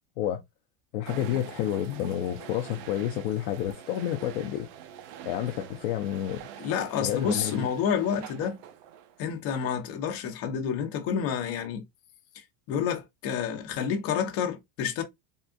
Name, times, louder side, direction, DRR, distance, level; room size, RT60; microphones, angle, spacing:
voice 1, 0.9-4.7 5.2-6.4 7.0-7.7, left 11 dB, 55° left, 0.5 m, -30 dB
sound 1, 1.1-9.3, right 9 dB, 45° right, 0.4 m, -45 dB
voice 2, 6.6-8.6 9.2-11.8 12.3-15.0, left 7 dB, 35° left, 0.9 m, -29 dB
3.6 x 2.4 x 2.4 m
supercardioid pair, 165°, 42 cm